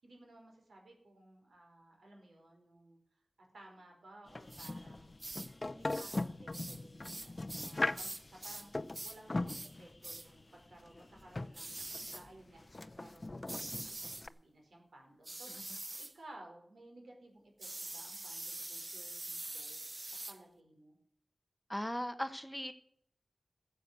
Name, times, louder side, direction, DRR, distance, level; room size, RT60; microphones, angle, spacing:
voice 1, 0.0-3.0 3.4-5.1 5.6-8.7 9.0-21.0, right 1 dB, 75° right, 1 dB, 4.9 m, -58 dB
sound 1, 4.3-14.3, left 2 dB, 35° left, 0.6 m, -41 dB
sound 2, 4.5-4.7 5.2-5.5 5.9-6.3 6.5-8.7 8.9-9.2 9.5-9.7 10.0-10.3 11.5-12.3 13.5-14.3 15.2-16.1 17.6-20.4, right 2 dB, 35° right, 0.8 m, -44 dB
voice 2, 21.7-22.7, equal, 10° left, 10 dB, 1.0 m, -37 dB
14.5 x 7.7 x 8.0 m, 0.69 s
wide cardioid pair, 65°, 0 cm